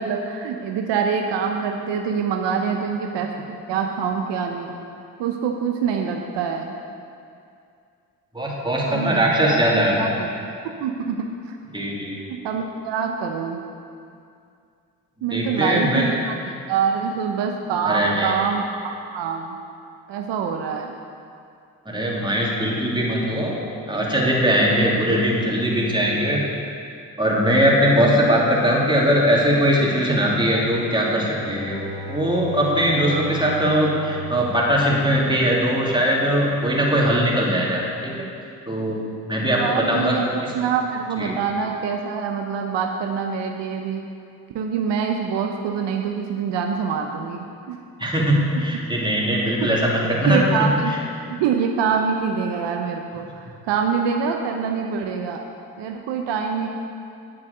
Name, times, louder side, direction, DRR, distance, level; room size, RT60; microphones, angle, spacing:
voice 1, 0.0-4.8 5.2-6.7 8.9-10.5 10.8-11.6 12.3-13.6 15.2-19.6 20.1-20.9 39.6-44.0 44.5-47.8 48.7-48.8 49.6-49.7 50.2-51.0 51.3-55.5 55.8-56.7, right 6 dB, 70° right, 3 dB, 0.9 m, -25 dB
voice 2, 8.3-10.1 11.7-12.3 15.2-16.0 17.8-18.3 21.8-23.6 23.9-26.4 27.2-31.8 32.1-38.2 38.7-40.2 40.4-40.5 41.2-41.3 48.0-50.7, equal, 10° right, -4 dB, 3.1 m, -20 dB
Bowed string instrument, 31.4-35.7, right 2 dB, 85° left, 2.8 m, -35 dB
10.5 x 7.0 x 6.7 m, 2.4 s
hypercardioid pair, 45°, 45 cm